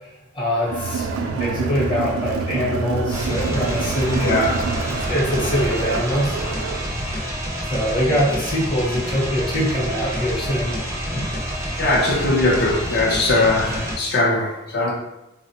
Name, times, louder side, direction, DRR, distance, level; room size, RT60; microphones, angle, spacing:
voice 1, 0.3-1.1 1.4-4.5 5.1-6.4 7.7-10.8 11.1-11.3, equal, 25° left, -4 dB, 0.7 m, -23 dB
Crowd, 0.6-6.9, right 4 dB, 85° right, 0.3 m, -27 dB
sound 1, 3.1-14.0, equal, 15° right, 0.4 m, -28 dB
voice 2, 11.8-14.9, left 2 dB, 55° left, -2 dB, 0.5 m, -20 dB
3.3 x 2.0 x 2.7 m, 0.94 s
head